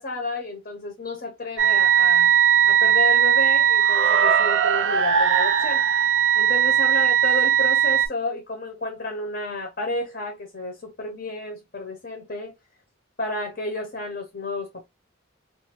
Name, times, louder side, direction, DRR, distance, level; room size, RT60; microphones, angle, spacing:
voice 1, 0.0-2.3 2.7-5.8 6.4-12.5 13.2-14.9, left 2 dB, 50° left, 0.8 m, -31 dB
sound 1, 1.6-8.1, right 9 dB, 65° right, 0.4 m, -19 dB
2.5 x 2.5 x 2.8 m
head